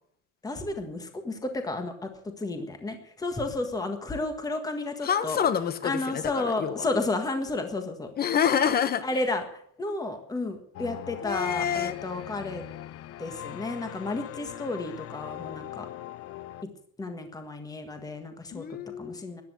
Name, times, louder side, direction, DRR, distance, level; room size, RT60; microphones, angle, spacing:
voice 1, 0.4-2.1 2.4-5.4 5.8-8.1 9.0-12.6 13.2-15.9 16.6-16.7 17.0-18.6 19.0-19.4, left 2 dB, 10° left, 6 dB, 1.6 m, -32 dB
voice 2, 5.0-6.9 8.2-9.0 11.2-12.0 18.5-19.2, left 8 dB, 25° left, 13 dB, 1.1 m, -27 dB
sound 1, 10.7-16.6, left 12 dB, 40° left, 0.6 m, -41 dB
14.0 x 10.5 x 8.0 m, 0.64 s
cardioid pair, 170°, 35 cm